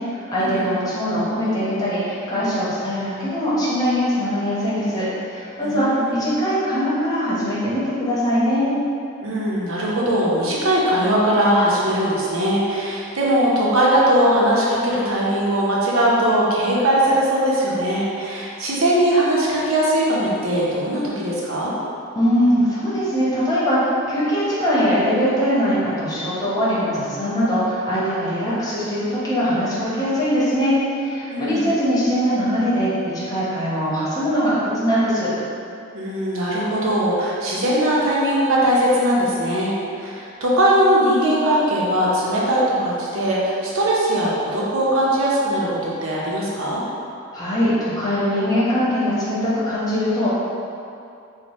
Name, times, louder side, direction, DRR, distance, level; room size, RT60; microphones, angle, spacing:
voice 1, 0.1-8.7 22.1-35.3 47.3-50.3, equal, 20° left, -10 dB, 0.9 m, -21 dB
voice 2, 5.6-6.2 9.2-21.7 31.3-31.7 35.9-46.8, right 1 dB, 85° right, -5 dB, 0.7 m, -20 dB
3.2 x 2.1 x 4.0 m, 2.5 s
head